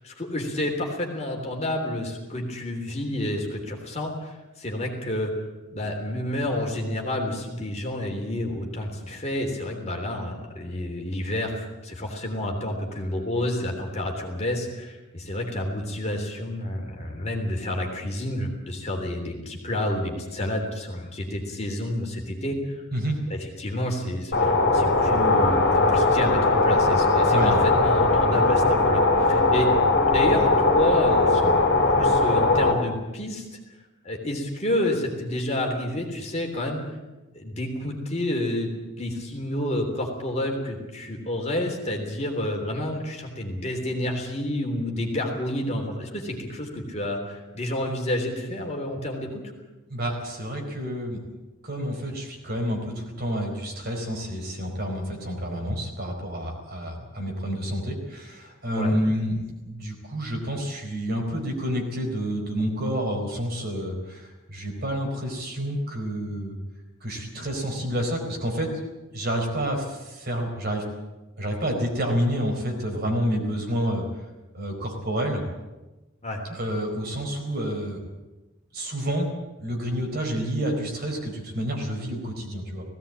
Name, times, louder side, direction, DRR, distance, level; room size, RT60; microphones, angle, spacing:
voice 1, 0.0-5.3 5.7-22.8 23.3-29.7 30.1-31.5 31.9-33.5 34.0-36.8 37.3-49.4 58.7-59.0 76.2-76.4, left 1 dB, 30° left, 1 dB, 3.3 m, -29 dB
sound 1, 24.3-32.7, left 2 dB, 50° left, 3.1 m, -20 dB
voice 2, 27.3-27.6 49.9-51.2 51.6-66.6 67.0-68.7 69.1-70.8 71.4-74.2 74.5-75.4 76.5-78.0 78.7-79.3 79.6-82.8, equal, 45° right, 1 dB, 4.5 m, -29 dB
18.0 x 17.0 x 8.9 m, 1.1 s
head